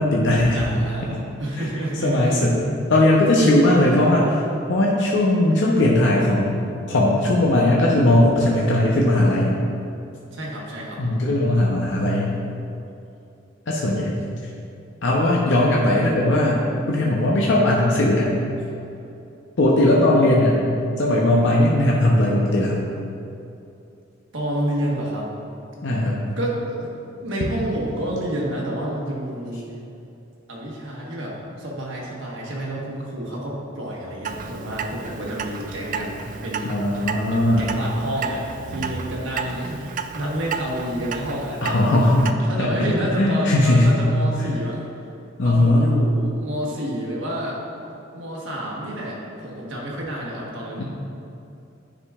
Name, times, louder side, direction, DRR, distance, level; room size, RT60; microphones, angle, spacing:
voice 1, 0.0-0.6 2.0-2.5 2.9-4.4 4.7-6.6 6.9-9.5 11.0-12.4 13.7-14.2 15.0-16.6 16.9-18.3 19.6-20.6 21.0-22.8 25.8-26.2 36.6-37.7 41.6-42.7 43.2-44.0 45.4-45.8 50.8-50.9, left 1 dB, 65° left, -3 dB, 0.7 m, -18 dB
voice 2, 0.5-2.4 2.6-2.7 10.3-11.0 24.3-25.3 26.4-27.0 27.2-29.6 30.5-36.8 37.3-41.9 42.4-44.9 45.4-47.6 48.1-50.8, right 1 dB, 70° right, -4 dB, 1.4 m, -29 dB
Clock, 34.2-42.3, right 5 dB, 40° right, 0.3 m, -33 dB
9.7 x 5.0 x 2.4 m, 2.7 s
head